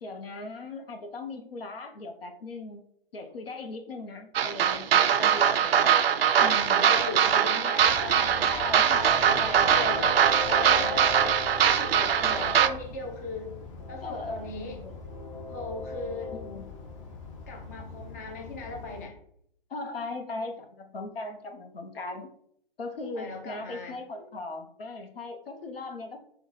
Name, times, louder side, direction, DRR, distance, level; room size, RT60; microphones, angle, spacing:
voice 1, 0.0-2.8 3.1-6.0 6.4-6.9 8.4-10.1 12.2-12.7 14.0-15.0 16.4-16.7 19.7-22.3 22.8-26.2, left 3 dB, 75° left, 6 dB, 0.9 m, -38 dB
sound 1, 4.3-12.7, right 8 dB, 80° right, 0.5 m, -22 dB
voice 2, 6.4-8.5 9.3-10.2 10.5-11.1 11.7-13.5 13.9-14.8 15.5-16.3 17.5-19.2 23.1-24.0, left 3 dB, 20° left, 2 dB, 0.4 m, -37 dB
Train, 7.8-19.0, left 3 dB, 35° left, 0.7 m, -40 dB
4.4 x 2.2 x 4.0 m, 0.69 s
hypercardioid pair, 145°, 29 cm